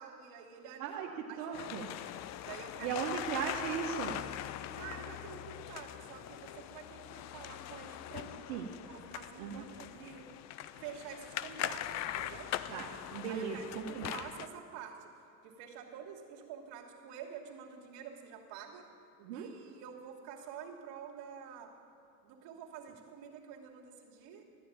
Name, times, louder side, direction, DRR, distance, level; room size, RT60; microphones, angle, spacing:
voice 1, 0.0-1.9 2.4-3.0 4.7-10.3 10.8-12.5 13.3-15.1 15.4-18.9 19.3-21.7 22.2-24.4, right 8 dB, 60° right, 0 dB, 2.8 m, -48 dB
voice 2, 0.8-1.9 2.8-4.2 8.5-8.7 9.4-9.6 12.7-14.1 19.2-19.5, right 7 dB, 80° right, -2 dB, 1.6 m, -37 dB
sound 1, 1.5-14.5, left 12 dB, 35° left, 0.5 m, -42 dB
13.5 x 9.9 x 8.8 m, 2.8 s
supercardioid pair, 120°, 47 cm